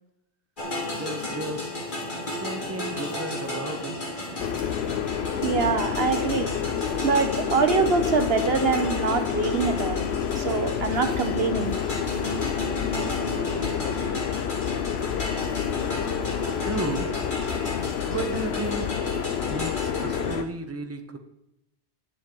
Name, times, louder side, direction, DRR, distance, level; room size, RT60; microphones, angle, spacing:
sound 1, 0.6-20.4, left 1 dB, 45° left, 2.4 m, -33 dB
voice 1, 0.9-1.7 2.2-4.2 16.6-17.1 18.1-18.9 19.5-21.2, right 2 dB, 15° right, 6 dB, 1.0 m, -33 dB
sound 2, 4.4-20.4, left 9 dB, 70° left, 0.9 m, -29 dB
voice 2, 5.4-6.5 7.0-10.0 10.4-11.7, right 5 dB, 60° right, 8 dB, 1.1 m, -24 dB
10.0 x 9.7 x 4.6 m, 0.88 s
omnidirectional pair, 1.2 m